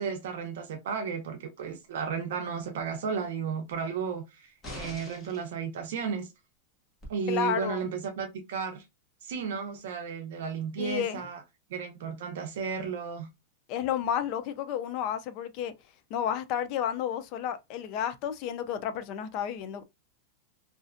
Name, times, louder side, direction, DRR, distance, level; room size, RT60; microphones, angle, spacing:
voice 1, 0.0-6.3 7.1-8.8 9.2-11.4 11.7-13.3, right 6 dB, 70° right, 0.5 m, -34 dB
sound 1, 4.6-5.5 7.0-7.1, left 1 dB, 20° left, 0.8 m, -42 dB
voice 2, 7.3-7.9 10.8-11.2 13.7-15.7 16.1-19.8, left 9 dB, 40° left, 0.3 m, -31 dB
2.5 x 2.1 x 2.4 m
supercardioid pair, 160°, 0 cm